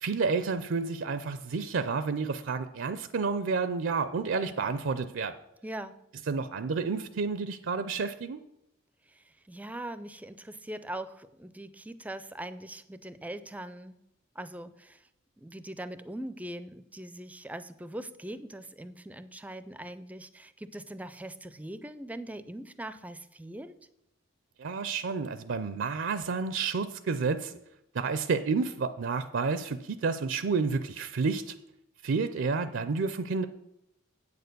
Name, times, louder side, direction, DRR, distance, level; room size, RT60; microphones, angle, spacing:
voice 1, 0.0-5.3 6.3-8.4 24.6-27.6 27.9-31.5 32.0-33.4, right 4 dB, 65° right, 12 dB, 0.5 m, -30 dB
voice 2, 5.6-6.0 9.1-14.0 14.4-15.1 15.4-23.8, right 1 dB, 5° right, 13 dB, 0.4 m, -41 dB
8.4 x 6.8 x 6.7 m, 0.84 s
head